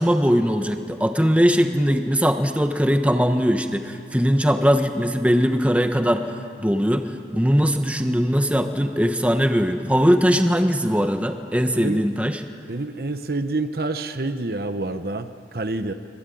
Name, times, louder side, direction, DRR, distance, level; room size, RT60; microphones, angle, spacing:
voice 1, 0.0-6.3 6.6-12.4, equal, 10° right, 6 dB, 1.2 m, -20 dB
voice 2, 12.7-15.9, right 2 dB, 60° right, 9 dB, 1.0 m, -27 dB
25.5 x 21.5 x 9.3 m, 2.3 s
head